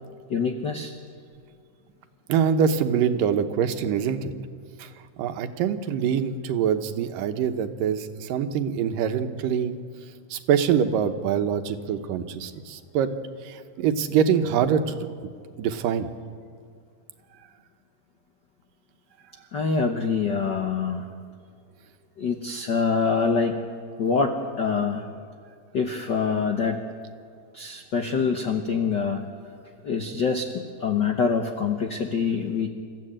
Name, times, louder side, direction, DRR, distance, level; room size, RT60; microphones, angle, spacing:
voice 1, 0.3-0.9 19.5-21.0 22.2-23.6 24.0-25.0 25.7-26.8 27.5-29.2 29.8-32.7, left 5 dB, 90° left, 4 dB, 0.9 m, -25 dB
voice 2, 2.3-4.3 4.8-4.9 5.2-9.8 10.3-13.1 13.4-15.3 15.6-16.1, right 8 dB, 85° right, 8 dB, 2.7 m, -24 dB
27.5 x 14.0 x 8.9 m, 2.2 s
omnidirectional pair, 3.8 m